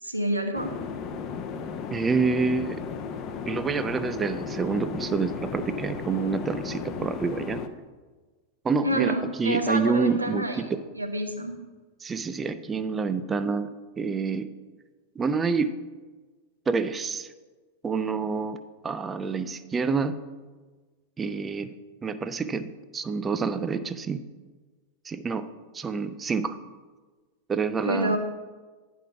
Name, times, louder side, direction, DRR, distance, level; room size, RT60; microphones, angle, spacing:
voice 1, 0.0-0.7 8.8-10.6 10.9-11.5 27.8-28.2, right 1 dB, 85° right, 4 dB, 0.9 m, -27 dB
sound 1, 0.5-7.7, left 6 dB, 35° left, 0.6 m, -35 dB
voice 2, 1.9-2.8 3.5-7.6 8.6-9.1 9.4-10.8 12.0-13.7 14.0-14.5 15.2-15.7 16.7-17.3 17.8-18.6 18.8-20.2 21.2-21.7 22.0-24.2 25.0-25.5 25.7-26.6 27.5-28.2, right 4 dB, 20° right, 12 dB, 0.5 m, -27 dB
10.0 x 3.6 x 5.8 m, 1.3 s
figure-of-eight pair, 90°, 0 cm